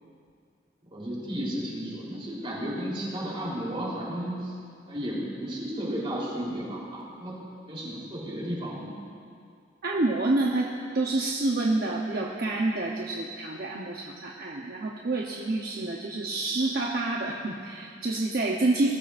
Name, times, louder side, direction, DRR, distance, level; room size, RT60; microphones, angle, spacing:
voice 1, 0.9-4.5 4.9-7.3 7.7-8.9, equal, 30° right, -5 dB, 3.6 m, -33 dB
voice 2, 9.8-10.7 10.9-19.0, right 2 dB, 55° right, -1 dB, 0.9 m, -28 dB
21.0 x 13.0 x 2.6 m, 2.3 s
head